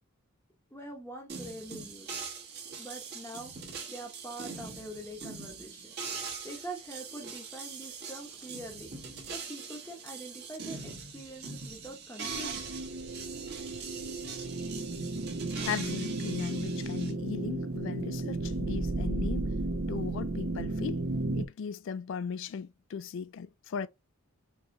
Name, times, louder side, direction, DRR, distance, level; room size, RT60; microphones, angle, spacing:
voice 1, 0.7-2.2 2.8-3.5 3.9-5.9 6.4-8.9 9.3-12.7, right 1 dB, 10° left, 0.8 m, -44 dB
sound 1, 1.3-17.1, right 5 dB, 50° right, 1.2 m, -42 dB
sound 2, 12.2-21.5, right 2 dB, 65° right, 0.6 m, -34 dB
voice 2, 15.7-19.5 19.9-21.0 21.3-23.9, left 6 dB, 60° left, 0.3 m, -37 dB
4.5 x 3.0 x 2.5 m
head